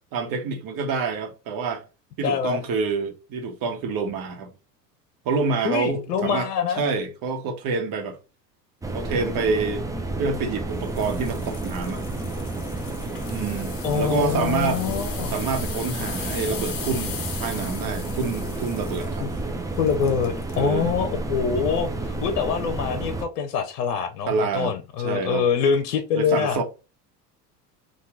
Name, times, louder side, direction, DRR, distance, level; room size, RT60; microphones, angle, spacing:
voice 1, 0.1-1.8 2.2-4.5 5.2-6.5 6.7-8.2 8.9-9.8 10.2-12.0 13.3-14.8 15.3-19.3 20.5-20.9 24.3-24.7 25.0-25.4 26.1-26.6, right 4 dB, 45° right, 1.2 m, -27 dB
voice 2, 2.2-2.6 5.6-6.8 13.8-15.3 19.2-19.3 19.8-26.6, left 7 dB, 80° left, 0.8 m, -25 dB
sound 1, 8.8-23.3, right 2 dB, 10° right, 0.5 m, -31 dB
sound 2, 10.8-20.7 21.2-21.4 22.0-22.1, left 7 dB, 45° left, 1.0 m, -39 dB
3.0 x 2.6 x 3.6 m
hypercardioid pair, 80°, 47 cm